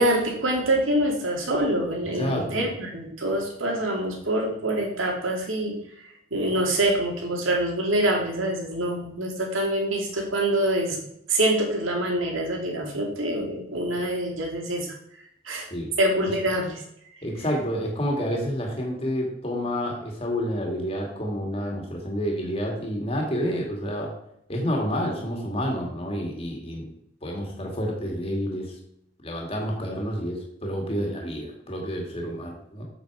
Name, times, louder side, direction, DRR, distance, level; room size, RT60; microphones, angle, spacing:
voice 1, 0.0-5.8 6.3-11.0 11.3-14.9 15.4-15.7 16.0-16.8, right 1 dB, 90° right, 0 dB, 2.7 m, -25 dB
voice 2, 2.1-2.7 15.7-15.9 17.2-24.1 24.5-26.9 27.2-28.7 29.2-32.8, equal, 30° left, 0 dB, 2.1 m, -29 dB
8.1 x 7.3 x 4.8 m, 0.74 s
head